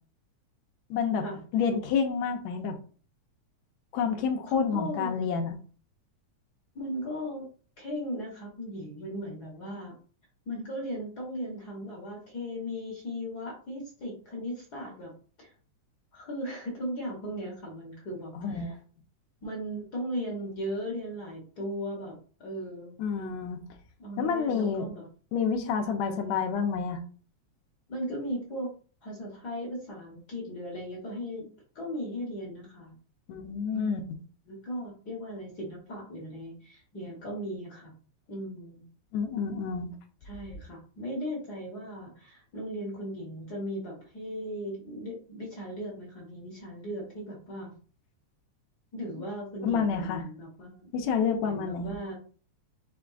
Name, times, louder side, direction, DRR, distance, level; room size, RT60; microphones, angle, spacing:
voice 1, 0.9-1.2 1.5-2.8 3.9-5.6 18.4-18.7 23.0-23.6 24.2-24.9 25.3-27.0 33.3-34.0 39.1-39.9 49.6-50.2 50.9-51.9, left 6 dB, 75° left, 5 dB, 1.8 m, -28 dB
voice 2, 4.5-5.2 6.7-7.5 7.8-10.0 10.5-15.1 15.4-15.5 16.1-18.7 19.4-22.1 22.4-23.6 24.0-25.1 25.7-26.4 27.9-28.7 29.0-31.5 31.7-33.0 33.7-34.0 34.5-37.9 38.3-38.9 40.2-47.7 48.9-50.9 51.4-52.1, equal, 55° left, -2 dB, 1.1 m, -37 dB
5.8 x 3.5 x 2.4 m, 0.41 s
omnidirectional pair, 3.4 m